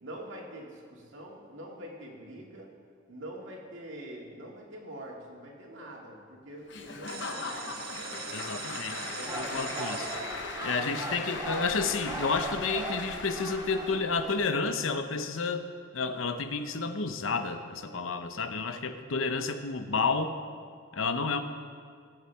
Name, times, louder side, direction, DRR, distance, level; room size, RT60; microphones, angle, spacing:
voice 1, 0.0-2.7 3.1-7.5 8.0-8.3 8.9-9.7 10.0-12.1, right 1 dB, 70° right, -1 dB, 2.1 m, -45 dB
Applause / Crowd, 6.7-14.0, left 4 dB, 65° left, 1.0 m, -39 dB
sound 1, 7.1-12.7, right 10 dB, 50° right, 0.6 m, -44 dB
voice 2, 8.3-9.0 9.4-10.1 10.6-15.7 15.9-20.4 20.9-21.4, left 4 dB, 85° left, 8 dB, 0.8 m, -30 dB
sound 2, 9.0-14.5, right 2 dB, 20° right, 1.2 m, -39 dB
20.5 x 8.0 x 3.4 m, 2.1 s
head